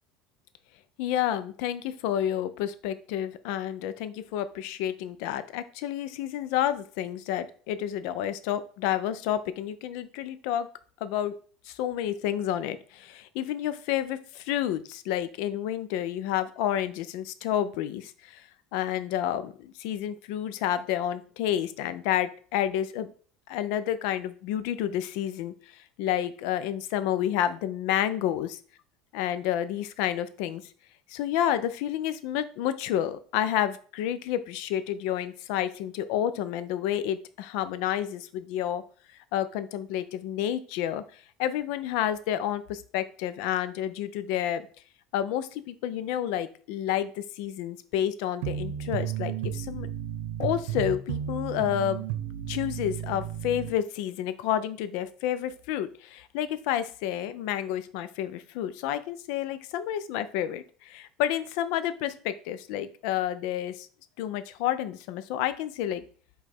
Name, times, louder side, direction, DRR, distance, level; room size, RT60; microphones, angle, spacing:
voice 1, 1.0-10.7 11.0-11.3 11.7-23.1 23.5-28.5 29.1-30.6 31.1-38.8 39.3-44.6 45.1-49.9 50.4-52.0 52.5-63.9 64.2-66.0, left 11 dB, 65° left, 12 dB, 0.4 m, -30 dB
sound 1, 48.4-53.7, right 10 dB, 80° right, 0.4 m, -33 dB
5.0 x 2.3 x 4.3 m, 0.43 s
cardioid pair, 165°, 0 cm